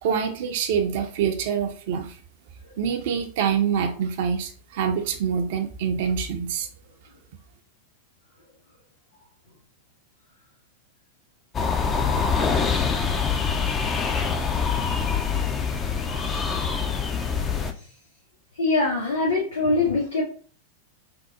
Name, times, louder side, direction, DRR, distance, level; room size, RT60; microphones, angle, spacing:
voice 1, 0.0-2.2 2.8-6.7, right 7 dB, 50° right, 5 dB, 0.4 m, -25 dB
sound 1, 11.5-17.7, left 5 dB, 25° left, 0.3 m, -25 dB
voice 2, 18.5-20.2, left 3 dB, 80° left, -8 dB, 1.0 m, -23 dB
3.5 x 2.0 x 2.7 m, 0.43 s
figure-of-eight pair, 90°, 0 cm